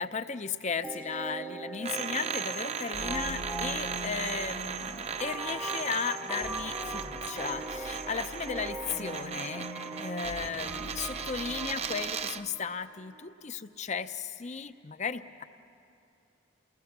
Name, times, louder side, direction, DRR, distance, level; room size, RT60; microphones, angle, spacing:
voice 1, 0.0-9.7 10.0-15.4, left 6 dB, 35° left, 11 dB, 0.6 m, -35 dB
sound 1, 0.8-13.2, right 2 dB, 10° right, 0.8 m, -42 dB
sound 2, 1.8-12.5, right 6 dB, 35° right, 0.5 m, -37 dB
sound 3, 2.9-12.1, left 1 dB, 65° left, 1.1 m, -45 dB
29.0 x 19.5 x 6.0 m, 2.6 s
head